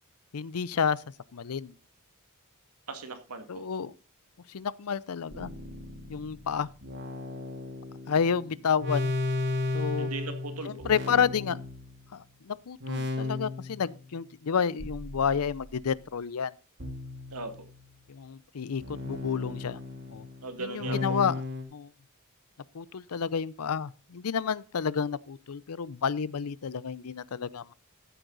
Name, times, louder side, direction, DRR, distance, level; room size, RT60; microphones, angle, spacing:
voice 1, 0.3-1.0 1.3-1.7 3.5-3.9 4.5-5.5 6.1-6.7 8.1-9.1 9.7-10.1 10.6-11.6 12.1-16.5 18.1-19.8 20.1-20.3 20.6-21.3 21.7-21.9 22.7-27.7, left 6 dB, 80° left, 0.5 m, -30 dB
voice 2, 2.9-3.6 10.0-10.9 17.3-17.5 20.4-21.3, right 3 dB, 90° right, 2.1 m, -38 dB
sound 1, 5.3-12.3 12.8-13.9 14.8-16.0 16.8-18.0 18.8-21.6, left 3 dB, 55° right, 2.9 m, -35 dB
14.0 x 7.9 x 4.0 m
head